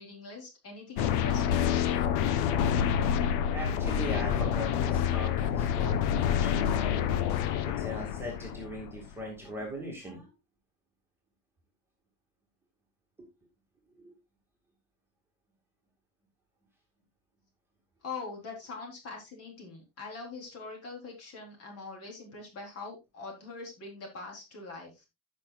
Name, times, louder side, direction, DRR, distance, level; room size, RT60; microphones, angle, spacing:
voice 1, 0.0-1.7 18.0-25.1, left 4 dB, 40° left, 1 dB, 4.0 m, -43 dB
sound 1, 1.0-9.1, left 9 dB, 80° left, 1.1 m, -28 dB
voice 2, 3.5-7.1 7.6-10.3 14.0-14.1, equal, 5° right, -2 dB, 2.2 m, -40 dB
15.5 x 6.1 x 2.4 m, 0.24 s
cardioid pair, 170°, 38 cm